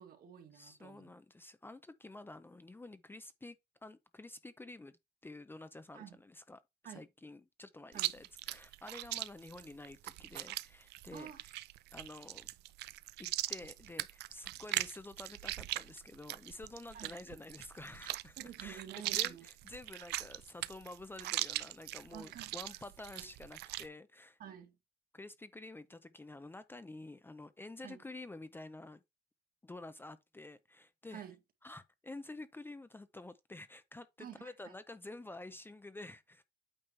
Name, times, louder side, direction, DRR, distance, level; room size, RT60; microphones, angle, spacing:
voice 1, 0.0-1.1 5.9-6.2 6.8-7.0 7.9-8.1 11.1-11.4 16.9-17.1 18.4-19.4 22.1-22.6 23.1-23.3 24.4-24.8 27.8-28.0 31.1-31.4 34.2-34.8, right 9 dB, 60° right, 2.0 m, -50 dB
voice 2, 0.5-3.6 3.8-11.6 11.9-12.5 13.2-24.4 25.1-29.0 29.6-31.2 31.6-36.4, left 2 dB, 10° left, 0.6 m, -50 dB
Chewing mastication, 7.9-23.9, right 17 dB, 80° right, 0.5 m, -40 dB
8.8 x 3.1 x 5.4 m
cardioid pair, 110°, 17 cm